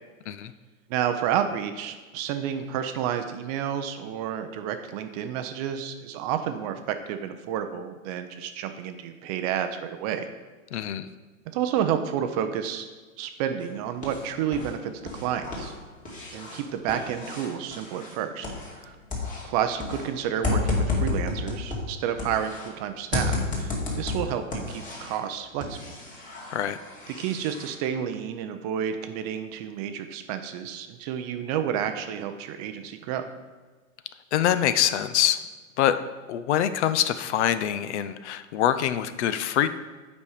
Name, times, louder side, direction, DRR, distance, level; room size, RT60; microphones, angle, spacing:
voice 1, 0.9-10.3 10.7-10.8 11.5-12.9 13.2-14.9 15.2-15.7 16.3-18.5 18.8-19.0 19.4-25.8 27.2-33.2, right 9 dB, 30° right, 8 dB, 0.5 m, -30 dB
voice 2, 10.7-11.1 26.5-26.8 34.3-35.4 35.8-36.0 36.3-39.7, left 10 dB, 55° left, 13 dB, 0.6 m, -24 dB
sound 1, 13.6-14.7 15.0-18.8 19.1-22.7 23.1-25.2 25.6-27.7, left 3 dB, 20° left, 2.2 m, -31 dB
8.2 x 5.3 x 4.9 m, 1.3 s
hypercardioid pair, 125°, 41 cm